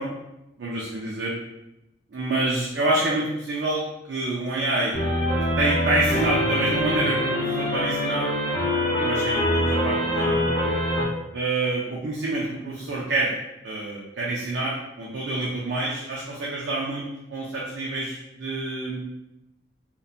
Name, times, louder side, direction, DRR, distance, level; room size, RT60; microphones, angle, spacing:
voice 1, 0.6-1.3 2.1-5.0 5.6-8.3 9.0-10.4 11.3-13.3 13.6-19.0, right 2 dB, 65° right, -5 dB, 0.4 m, -27 dB
sound 1, 4.9-11.1, left 1 dB, 40° left, 0.9 m, -24 dB
2.7 x 2.1 x 2.3 m, 0.92 s
head